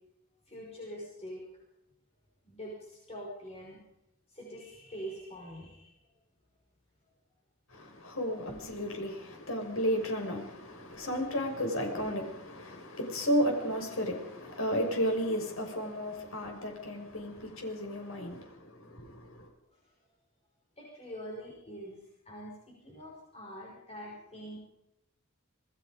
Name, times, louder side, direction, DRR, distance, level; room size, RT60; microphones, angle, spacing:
voice 1, 0.5-1.5 2.5-3.8 4.3-5.9 19.7-19.8 20.8-24.6, equal, 30° left, 5.7 m, -44 dB
voice 2, 7.7-19.5, equal, 80° left, 6.2 m, -33 dB
27.5 x 20.5 x 5.3 m
head